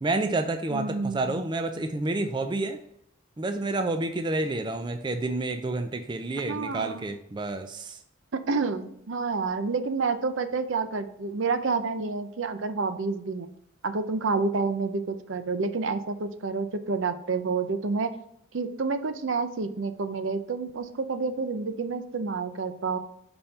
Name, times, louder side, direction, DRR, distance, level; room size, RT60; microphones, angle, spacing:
voice 1, 0.0-2.8 3.4-8.0, right 2 dB, 20° right, 7 dB, 0.4 m, -29 dB
voice 2, 0.7-1.4 6.4-7.1 8.3-13.5 13.8-18.1 18.5-23.0, right 4 dB, 70° right, 10 dB, 0.6 m, -29 dB
5.5 x 4.3 x 5.5 m, 0.74 s
head